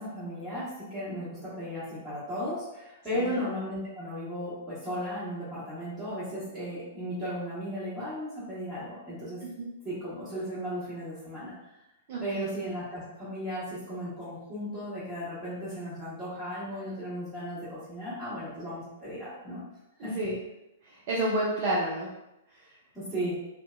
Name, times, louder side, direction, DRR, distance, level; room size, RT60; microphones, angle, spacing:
voice 1, 0.0-9.4 9.8-11.5 12.2-19.6 20.0-20.1 22.9-23.4, equal, ahead, -15 dB, 1.3 m, -35 dB
voice 2, 12.1-12.5 20.0-20.4 20.8-22.1 22.5-22.8, right 1 dB, 45° right, -5 dB, 0.5 m, -31 dB
2.6 x 2.1 x 2.5 m, 0.90 s
figure-of-eight pair, 105°, 0 cm